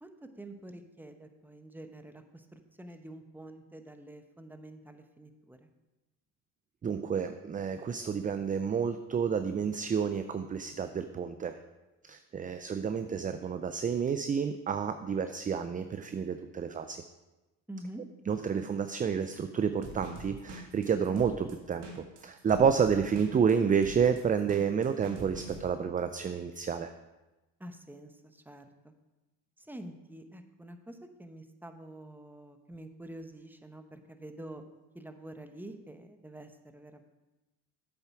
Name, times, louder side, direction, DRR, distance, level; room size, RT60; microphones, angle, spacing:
voice 1, 0.0-5.7 17.7-18.0 27.6-28.9 29.6-34.6 34.9-37.0, right 1 dB, 5° right, 7 dB, 0.9 m, -47 dB
voice 2, 6.8-11.6 12.0-17.0 18.3-26.9, right 6 dB, 20° right, 9 dB, 0.4 m, -30 dB
sound 1, 19.8-25.6, right 2 dB, 65° right, 1.9 m, -45 dB
8.1 x 7.1 x 4.7 m, 1.1 s
supercardioid pair, 70°, 43 cm